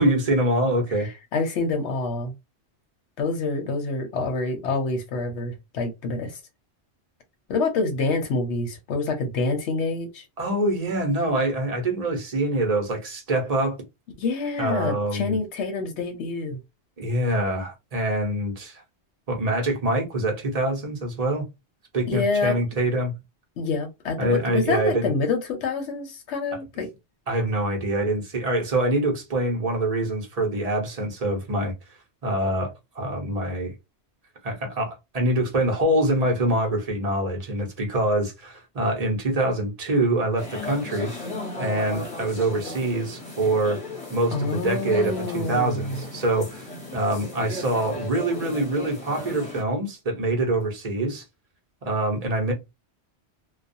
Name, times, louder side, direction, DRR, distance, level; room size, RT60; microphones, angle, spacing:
voice 1, 0.0-1.1 10.4-13.8 14.6-15.4 17.0-18.8 19.3-21.5 21.9-23.1 24.2-25.1 27.3-31.7 32.2-33.7 34.4-41.1 41.6-43.8 44.1-46.6 46.9-51.2 51.8-52.5, right 1 dB, 35° right, 0.9 m, -25 dB
voice 2, 1.0-2.3 3.2-6.4 7.5-10.2 14.2-16.6 22.1-22.6 23.6-26.9 44.3-46.0, left 3 dB, 85° left, 1.0 m, -27 dB
sound 1, 40.4-49.6, left 2 dB, 35° left, 1.0 m, -36 dB
2.4 x 2.3 x 2.6 m
omnidirectional pair, 1.2 m